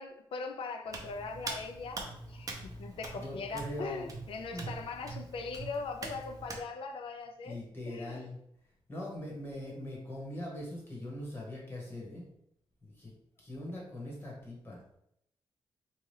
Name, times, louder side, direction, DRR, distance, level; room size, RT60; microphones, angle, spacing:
voice 1, 0.0-7.6 7.9-8.3, left 4 dB, 65° left, 6 dB, 0.4 m, -40 dB
Hands, 0.9-6.6, right 3 dB, 35° right, 0.5 m, -43 dB
voice 2, 3.2-4.2 4.5-4.7 7.4-8.4 8.9-12.2 12.8-13.1 13.4-14.8, left 1 dB, 25° left, -3 dB, 1.1 m, -41 dB
2.8 x 2.3 x 3.2 m, 0.76 s
wide cardioid pair, 125°, 10 cm